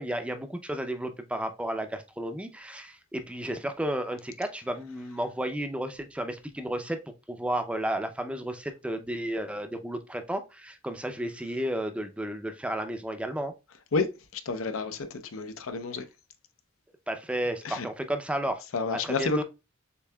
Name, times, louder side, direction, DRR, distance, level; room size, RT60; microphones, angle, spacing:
voice 1, 0.0-7.0 7.3-13.5 17.1-18.6 19.0-19.4, right 1 dB, 5° right, 0.4 m, -32 dB
voice 2, 13.9-16.1 17.6-17.9 18.7-19.4, left 3 dB, 90° left, 0.6 m, -30 dB
6.8 x 2.8 x 2.2 m
head